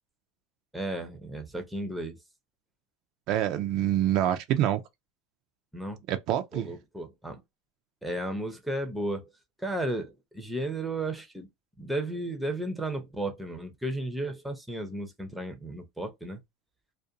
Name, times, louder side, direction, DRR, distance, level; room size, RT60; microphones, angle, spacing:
voice 1, 0.7-2.2 5.7-6.0 6.5-7.4 8.0-9.3 9.6-11.5 11.8-16.4, right 1 dB, ahead, 0.6 m, -34 dB
voice 2, 3.3-4.8 6.1-6.7, right 12 dB, 45° right, 0.3 m, -26 dB
2.4 x 2.1 x 2.7 m
supercardioid pair, 155°, 0 cm